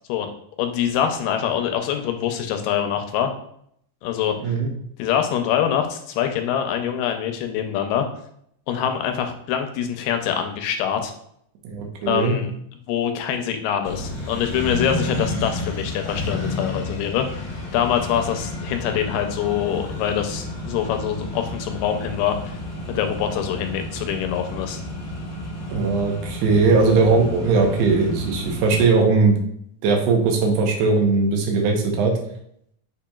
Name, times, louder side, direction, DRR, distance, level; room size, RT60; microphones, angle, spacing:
voice 1, 0.6-3.3 4.0-4.6 5.0-8.1 8.7-11.1 12.1-12.5 12.9-17.4 17.7-22.6 22.9-24.8, left 9 dB, 85° left, 6 dB, 2.2 m, -24 dB
voice 2, 11.6-12.4 25.7-29.3 29.8-32.1, right 4 dB, 80° right, 1 dB, 1.5 m, -19 dB
Accelerating revving vroom, 13.8-28.8, left 1 dB, 50° left, 0.7 m, -31 dB
6.7 x 2.9 x 2.3 m, 0.69 s
omnidirectional pair, 3.9 m